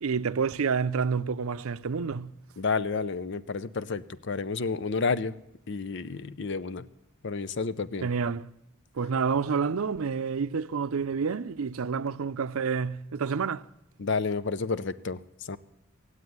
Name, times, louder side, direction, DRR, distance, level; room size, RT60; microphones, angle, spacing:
voice 1, 0.0-2.3 8.0-8.5 9.0-13.6, right 5 dB, 85° right, 0.5 m, -29 dB
voice 2, 2.6-5.4 5.7-6.8 7.2-8.1 14.0-15.6, left 4 dB, 55° left, 0.6 m, -30 dB
17.0 x 8.2 x 9.5 m
head